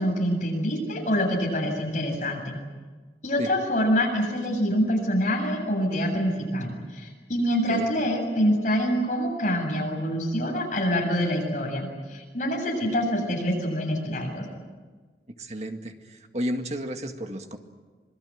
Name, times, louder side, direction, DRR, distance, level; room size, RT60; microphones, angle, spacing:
voice 1, 0.0-2.6 3.2-14.5, equal, 45° left, 0 dB, 7.9 m, -26 dB
voice 2, 15.4-17.6, equal, 40° right, 5 dB, 2.0 m, -32 dB
26.5 x 21.5 x 9.4 m, 1.4 s
head